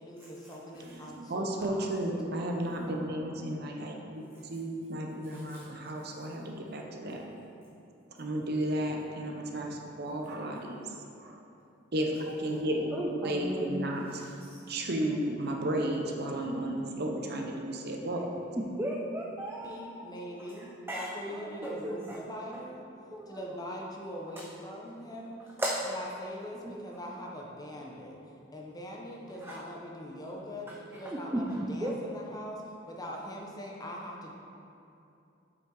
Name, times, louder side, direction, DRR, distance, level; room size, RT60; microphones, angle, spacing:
voice 1, 0.0-1.9 12.5-12.9 19.6-22.8 23.3-25.3 25.8-28.2 28.5-34.3, equal, 20° left, -1 dB, 0.8 m, -42 dB
voice 2, 0.9-7.2 8.2-11.4 11.9-14.2 14.7-18.2, right 1 dB, 55° right, 1 dB, 0.8 m, -33 dB
voice 3, 2.8-3.4 5.3-5.6 9.3-9.6 12.9-13.8 14.1-14.6 18.6-20.1 20.4-22.2 23.1-23.7 25.6-25.9 26.6-26.7 29.4-29.6 31.1-31.9, right 1 dB, 10° right, -3 dB, 0.5 m, -36 dB
7.2 x 5.6 x 3.8 m, 2.7 s
head